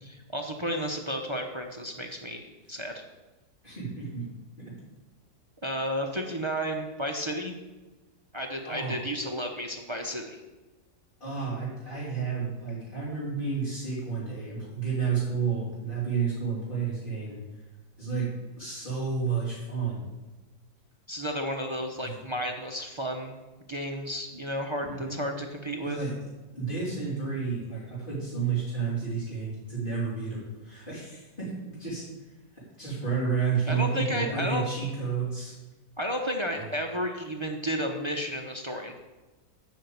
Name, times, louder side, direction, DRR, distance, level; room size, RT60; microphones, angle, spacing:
voice 1, 0.0-2.9 5.6-7.5 8.3-10.4 21.1-23.3 23.7-26.0 33.7-34.7 36.0-39.0, equal, 30° right, 3 dB, 0.5 m, -32 dB
voice 2, 3.6-4.2 8.6-9.0 11.2-17.4 18.0-18.3 18.6-20.0 22.0-22.1 24.8-25.2 25.8-26.1 26.5-32.1 32.8-35.6 36.5-36.7, right 5 dB, 30° left, -11 dB, 4.1 m, -31 dB
9.3 x 5.8 x 8.0 m, 1.2 s
omnidirectional pair, 1.9 m